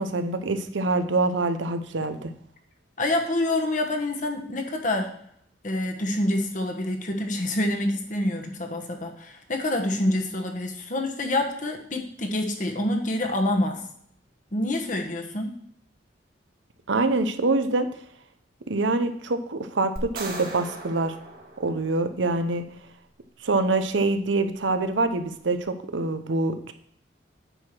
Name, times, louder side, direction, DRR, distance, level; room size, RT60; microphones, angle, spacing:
voice 1, 0.0-2.3 16.9-17.9 18.7-21.1 21.6-22.6 23.4-26.7, right 3 dB, 90° right, 9 dB, 0.8 m, -25 dB
voice 2, 3.0-5.1 5.6-13.8 14.5-15.5, left 1 dB, 45° left, 3 dB, 1.3 m, -27 dB
sound 1, 20.0-22.3, right 2 dB, 50° right, 1.5 m, -38 dB
9.1 x 4.8 x 6.1 m, 0.68 s
head